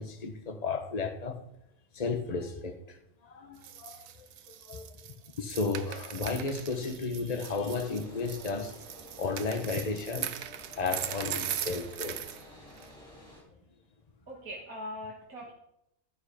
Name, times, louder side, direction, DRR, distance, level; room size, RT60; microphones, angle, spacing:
voice 1, 0.0-1.4 1.9-5.0 5.4-8.8 9.2-10.4 10.8-12.3, left 4 dB, 25° left, 1.3 m, -34 dB
sound 1, 3.6-12.4 12.8-12.9, right 10 dB, 80° right, 1.3 m, -39 dB
sound 2, 7.4-13.4, left 1 dB, 5° left, 5.9 m, -51 dB
voice 2, 14.3-15.5, equal, 65° right, 2.4 m, -41 dB
13.0 x 10.5 x 5.2 m
omnidirectional pair, 1.6 m